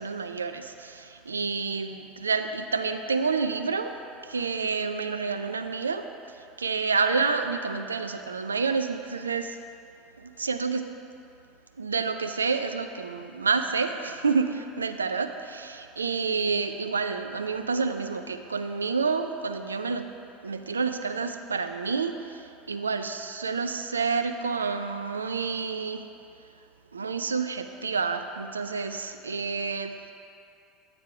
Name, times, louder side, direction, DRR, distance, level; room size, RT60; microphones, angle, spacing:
voice 1, 0.0-3.9 4.2-6.1 6.6-9.6 10.2-10.8 11.8-20.1 20.4-22.4 22.7-26.0 26.9-30.1, right 4 dB, 90° right, 8 dB, 0.3 m, -29 dB
8.3 x 3.3 x 5.8 m, 2.6 s
hypercardioid pair, 75°, 0 cm